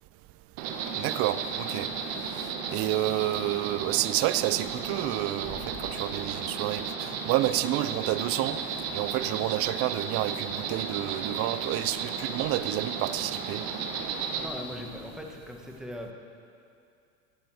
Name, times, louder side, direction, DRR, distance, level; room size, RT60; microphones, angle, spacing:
Insect, 0.6-14.5, right 6 dB, 55° right, 1.6 m, -34 dB
voice 1, 0.9-1.9 2.7-8.6 8.9-13.6, right 14 dB, 35° right, 15 dB, 0.4 m, -29 dB
sound 1, 4.4-15.2, left 2 dB, 40° left, 3.6 m, -53 dB
voice 2, 14.3-16.1, equal, ahead, 1 dB, 1.5 m, -40 dB
12.5 x 9.3 x 6.4 m, 2.4 s
hypercardioid pair, 105°, 43 cm